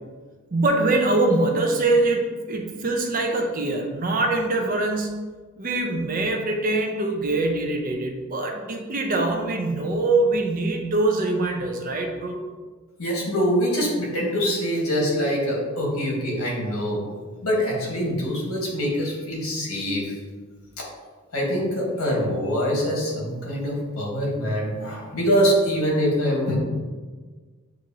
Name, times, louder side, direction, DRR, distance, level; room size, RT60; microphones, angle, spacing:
voice 1, 0.5-5.1 5.6-12.4, right 2 dB, 40° right, 3 dB, 0.5 m, -23 dB
voice 2, 13.0-17.0 17.4-20.1 20.8-20.9 21.3-26.6, equal, 80° left, -3 dB, 1.5 m, -24 dB
7.5 x 2.5 x 2.8 m, 1.4 s
head